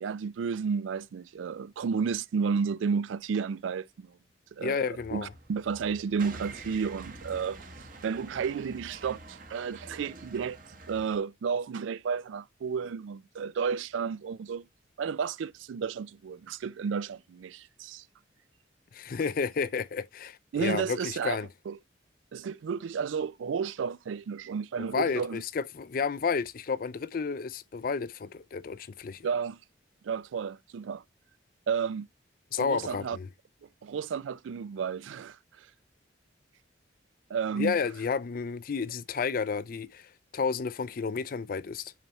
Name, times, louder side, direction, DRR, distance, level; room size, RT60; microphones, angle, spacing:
voice 1, 0.0-4.2 4.5-7.6 8.0-10.6 10.9-14.7 15.0-18.0 20.5-21.8 22.3-25.4 29.2-29.6 30.0-31.0 31.7-32.1 32.6-33.2 33.8-35.7 37.3-37.8, right 6 dB, 90° right, 0.4 m, -32 dB
voice 2, 4.6-5.3 18.9-21.5 24.8-29.3 32.5-33.3 37.6-41.9, left 5 dB, 50° left, 0.4 m, -31 dB
sound 1, 4.9-11.2, right 2 dB, 45° right, 1.1 m, -47 dB
8.9 x 4.1 x 3.0 m
head